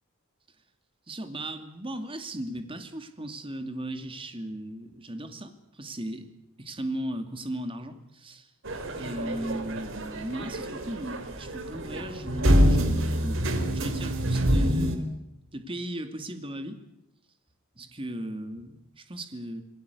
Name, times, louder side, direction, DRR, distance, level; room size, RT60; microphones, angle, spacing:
voice 1, 1.1-6.2 6.6-8.5 9.0-13.4 13.7-15.1 15.5-16.8 17.8-19.6, right 1 dB, 25° right, 7 dB, 2.4 m, -36 dB
sound 1, 8.7-15.0, equal, 60° right, 3.3 m, -26 dB
27.5 x 19.0 x 8.3 m, 0.89 s
head